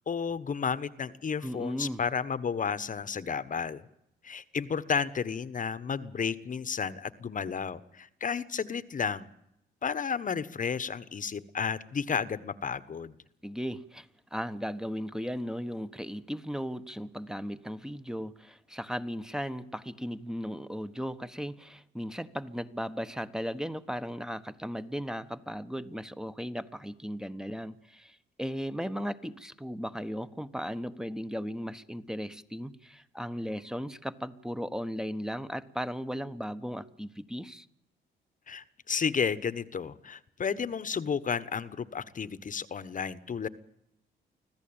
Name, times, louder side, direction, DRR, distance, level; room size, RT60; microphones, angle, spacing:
voice 1, 0.1-3.9 4.2-9.3 9.8-13.1 38.5-43.5, left 6 dB, 40° left, 15 dB, 1.3 m, -32 dB
voice 2, 1.4-2.0 13.4-37.7, equal, 5° right, 11 dB, 1.3 m, -36 dB
25.5 x 16.0 x 8.9 m, 0.80 s
cardioid pair, 90°, 20 cm